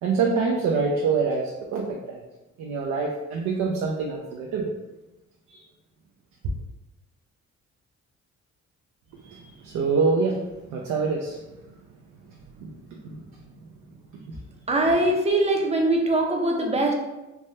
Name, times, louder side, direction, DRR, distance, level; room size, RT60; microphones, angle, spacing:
voice 1, 0.0-2.2 2.6-4.7 5.5-5.6 9.2-11.4 12.3-13.2 14.3-14.4, right 4 dB, 75° right, -1 dB, 0.5 m, -26 dB
voice 2, 14.7-16.9, right 2 dB, 20° right, 1 dB, 0.5 m, -22 dB
3.3 x 2.1 x 2.7 m, 1.0 s
cardioid pair, 90°, 30 cm